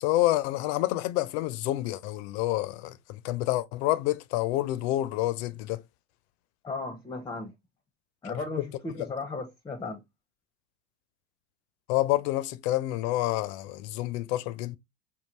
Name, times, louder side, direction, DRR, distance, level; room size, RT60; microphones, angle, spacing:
voice 1, 0.0-5.8 8.3-8.4 9.0-9.1 11.9-14.8, left 16 dB, 60° left, 0.5 m, -28 dB
voice 2, 6.6-7.5 8.2-10.0, left 3 dB, 10° left, 0.6 m, -35 dB
3.7 x 2.4 x 2.9 m
hypercardioid pair, 90°, 37 cm